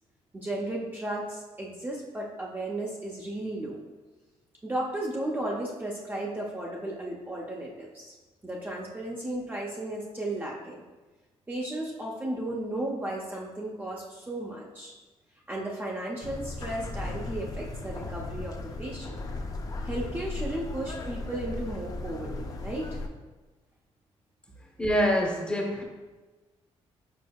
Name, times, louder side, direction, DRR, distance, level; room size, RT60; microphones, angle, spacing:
voice 1, 0.3-3.8 4.6-8.1 8.4-10.8 11.5-14.9 15.5-19.2 19.8-23.0, right 1 dB, 15° right, -3 dB, 0.6 m, -34 dB
sound 1, 16.2-23.1, left 2 dB, 35° left, 0.5 m, -36 dB
voice 2, 24.8-25.8, equal, 10° left, 0 dB, 0.8 m, -25 dB
5.2 x 4.3 x 2.3 m, 1.2 s
cardioid pair, 95°, 11 cm